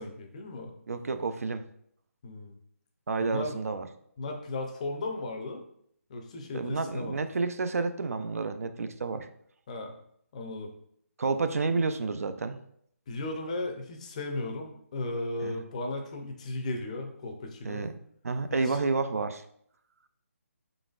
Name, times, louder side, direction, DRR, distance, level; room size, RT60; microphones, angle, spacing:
voice 1, 0.0-0.7 2.2-2.6 3.2-3.5 4.2-5.6 6.1-7.1 9.7-9.9 10.3-10.7 13.1-17.9 18.5-18.8, left 2 dB, 25° left, 4 dB, 0.5 m, -36 dB
voice 2, 0.9-1.6 3.1-3.9 6.5-9.3 11.2-12.6 15.4-15.6 17.6-17.9 18.2-19.4, right 4 dB, 75° right, 9 dB, 0.4 m, -30 dB
4.8 x 3.9 x 2.4 m, 0.68 s
hypercardioid pair, 165°, 8 cm